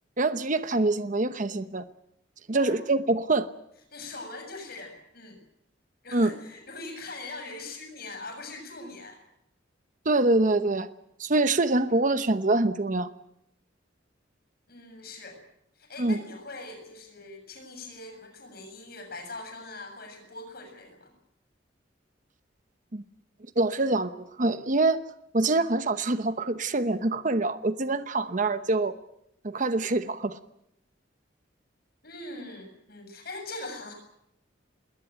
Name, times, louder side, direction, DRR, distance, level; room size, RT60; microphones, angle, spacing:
voice 1, 0.2-1.8 2.5-3.5 6.1-6.3 10.0-10.9 11.2-13.1 16.0-16.2 22.9-23.0 23.6-25.0 25.3-28.9 29.4-30.4, right 2 dB, 45° right, 11 dB, 1.0 m, -25 dB
voice 2, 3.9-5.4 6.0-9.2 14.7-15.4 15.8-21.1 32.0-33.9, left 2 dB, 55° left, 6 dB, 6.9 m, -42 dB
21.5 x 19.0 x 9.0 m, 0.80 s
head